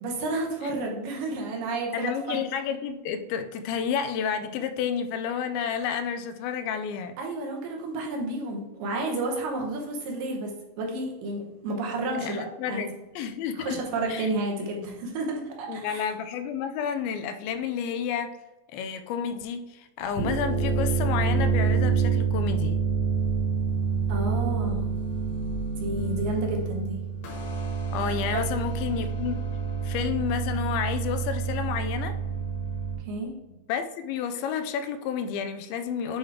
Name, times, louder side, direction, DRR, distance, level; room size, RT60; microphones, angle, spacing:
voice 1, 0.0-2.4 7.2-12.9 13.6-16.1 24.1-24.9 25.8-27.0 28.3-28.4 33.0-33.3, right 2 dB, 70° right, 1 dB, 2.5 m, -31 dB
voice 2, 1.9-7.2 12.2-13.8 14.1-14.3 15.7-18.4 18.7-22.8 27.9-29.4 29.8-32.2 33.7-36.2, left 7 dB, 85° left, 9 dB, 2.3 m, -30 dB
sound 1, 20.0-33.0, right 5 dB, 60° left, 2.4 m, -27 dB
8.3 x 3.0 x 4.7 m, 1.1 s
omnidirectional pair, 4.4 m